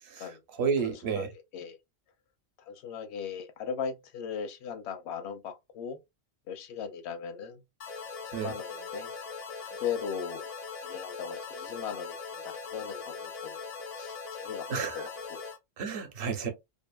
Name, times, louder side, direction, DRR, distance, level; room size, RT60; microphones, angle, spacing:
voice 1, 0.0-1.3 8.3-8.5 14.7-15.1 15.8-16.5, right 6 dB, 60° right, 0.9 m, -31 dB
voice 2, 0.8-1.8 2.6-6.0 6.5-7.6 8.4-9.1 9.6-10.4 10.8-13.7 13.9-14.7 14.9-15.4, left 7 dB, 75° left, 0.8 m, -38 dB
sound 1, 7.8-15.6, left 5 dB, 55° left, 0.4 m, -41 dB
2.6 x 2.5 x 2.2 m
omnidirectional pair, 1.2 m